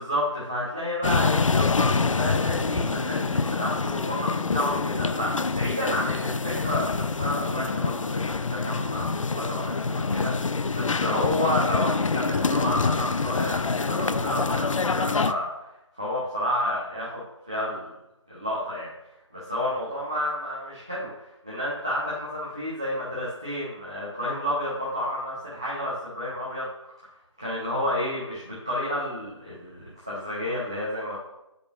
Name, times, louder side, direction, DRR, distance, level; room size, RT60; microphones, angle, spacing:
voice 1, 0.0-15.5 15.9-17.9 18.3-18.9 19.3-26.7 27.4-31.2, left 1 dB, 10° right, -8 dB, 0.5 m, -30 dB
sound 1, 1.0-15.3, left 4 dB, 85° left, 0.4 m, -26 dB
8.0 x 5.2 x 2.9 m, 0.91 s
figure-of-eight pair, 165°, 16 cm